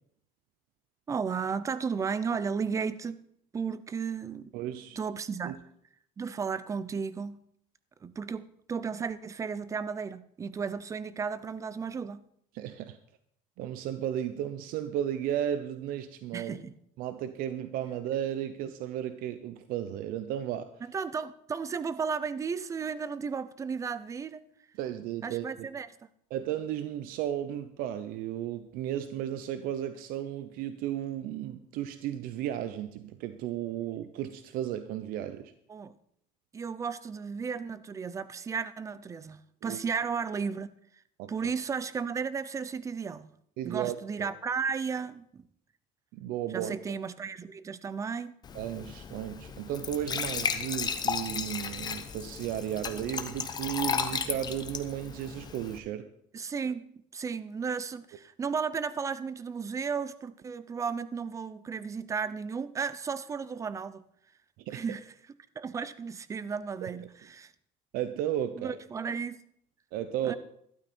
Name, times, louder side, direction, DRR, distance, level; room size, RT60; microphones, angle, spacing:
voice 1, 1.1-3.2 3.5-4.5 5.0-5.6 6.2-7.4 8.0-12.2 16.3-16.7 20.8-24.4 25.2-25.9 35.7-36.0 36.5-40.7 41.3-43.3 43.6-45.4 46.5-48.3 56.3-64.0 64.7-65.0 65.6-67.5 68.6-69.4 70.2-70.4, right 6 dB, 20° right, 0.5 m, -34 dB
voice 2, 4.5-5.0 5.4-5.6 12.5-13.0 13.6-16.6 17.0-20.7 24.8-25.7 26.3-35.5 39.6-39.8 41.2-41.5 43.6-44.3 46.1-46.8 48.5-56.1 64.6-64.8 66.8-66.9 67.9-68.8 69.9-70.4, right 11 dB, 70° right, 0.8 m, -34 dB
Glass / Trickle dribble / Fill (with liquid), 48.4-55.8, left 6 dB, 25° left, 0.9 m, -34 dB
12.5 x 12.0 x 4.4 m
cardioid pair, 150°, 15 cm